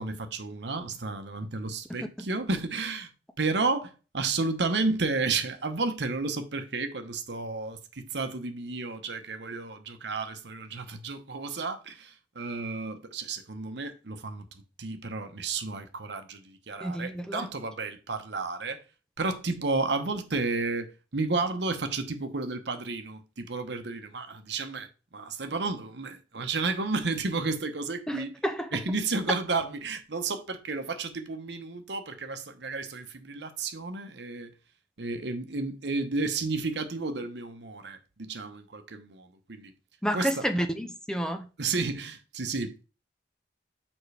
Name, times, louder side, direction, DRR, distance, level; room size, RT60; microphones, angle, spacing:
voice 1, 0.0-3.1 3.4-14.4 14.8-18.8 19.2-24.9 25.1-28.3 28.7-34.5 35.0-39.7 40.1-40.4 41.6-42.8, right 3 dB, 75° right, 1.0 m, -32 dB
voice 2, 16.8-17.4 28.1-28.7 40.0-41.4, equal, 5° left, 0.6 m, -30 dB
7.2 x 5.3 x 3.3 m
head